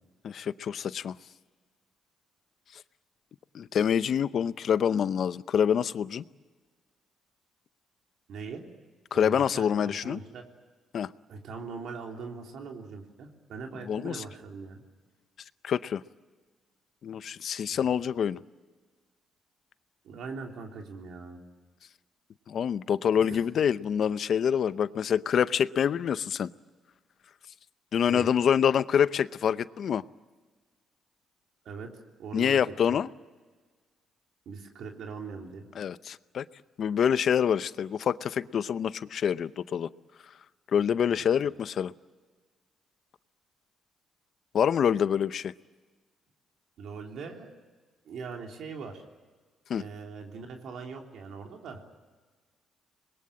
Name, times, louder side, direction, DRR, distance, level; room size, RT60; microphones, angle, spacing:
voice 1, 0.2-1.1 3.5-6.2 9.1-10.2 10.9-11.1 13.9-14.2 15.6-16.0 17.0-18.4 22.5-26.5 27.9-30.0 32.3-33.1 35.8-36.4 36.8-39.9 40.7-41.9 44.5-45.5 49.7-49.8, left 8 dB, 60° left, 15 dB, 0.7 m, -26 dB
voice 2, 8.3-8.6 9.1-10.4 11.3-14.8 17.7-17.8 20.0-21.4 23.3-23.4 28.1-28.3 31.6-31.9 32.2-33.0 34.5-35.7 41.1-41.3 46.8-47.6 48.1-49.0 49.7-51.8, right 5 dB, 75° right, 2 dB, 3.6 m, -41 dB
26.0 x 21.5 x 8.8 m, 1.4 s
cardioid pair, 90°, 0 cm